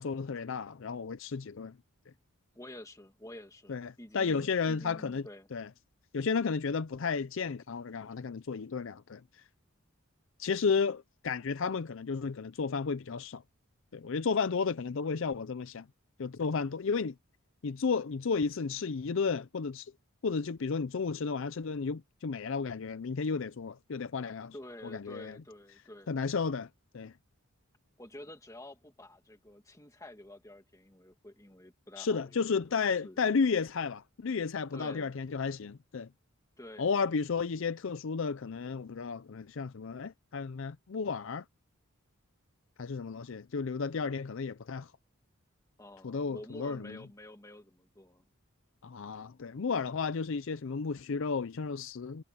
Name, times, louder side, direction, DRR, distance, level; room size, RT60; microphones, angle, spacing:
voice 1, 0.0-1.8 3.7-5.7 6.1-9.4 10.4-13.4 13.9-15.9 16.2-17.1 17.6-19.9 20.2-24.5 24.8-25.4 26.1-26.7 26.9-27.1 32.0-36.1 36.8-41.4 42.8-44.9 46.0-47.0 48.8-52.2, left 5 dB, 60° left, 0.5 m, -33 dB
voice 2, 2.5-5.5 24.5-26.2 28.0-32.4 32.7-33.2 34.7-35.2 36.6-37.1 45.8-48.2, left 1 dB, 15° left, 1.7 m, -49 dB
head